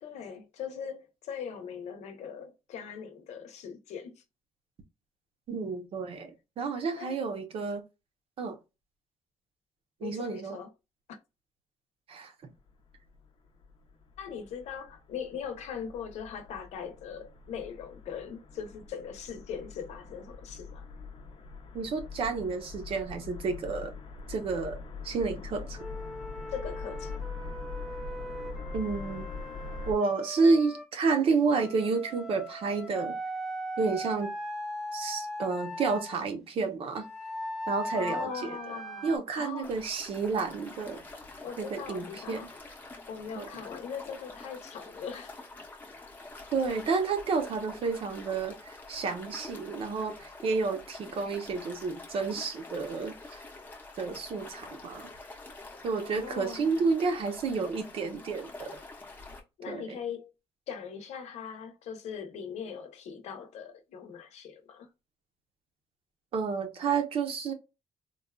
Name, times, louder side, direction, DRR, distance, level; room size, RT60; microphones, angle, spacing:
voice 1, 0.0-4.2 6.9-7.2 10.0-10.7 14.2-20.9 26.5-27.2 37.9-39.7 41.4-42.5 43.1-45.4 56.0-56.8 59.6-60.3 60.7-64.9, left 7 dB, 80° left, 0.8 m, -40 dB
voice 2, 5.5-7.8 8.4-8.6 10.0-10.6 12.1-12.3 21.7-23.9 24.3-24.8 25.0-25.8 28.7-29.3 29.9-33.2 33.8-34.3 34.9-37.0 37.7-38.6 39.0-41.0 41.6-42.5 43.4-43.6 46.5-53.4 54.0-55.1 55.8-58.7 59.7-60.0 66.3-67.5, right 4 dB, 55° right, 0.7 m, -30 dB
sound 1, 12.6-30.0, left 4 dB, 45° left, 0.6 m, -43 dB
Wind instrument woodwind instrument, 25.8-30.8 31.5-36.2 36.9-39.2, equal, 5° right, 0.4 m, -39 dB
sound 2, 39.6-59.4, left 2 dB, 15° left, 0.8 m, -47 dB
3.8 x 2.3 x 2.2 m
cardioid pair, 170°, 11 cm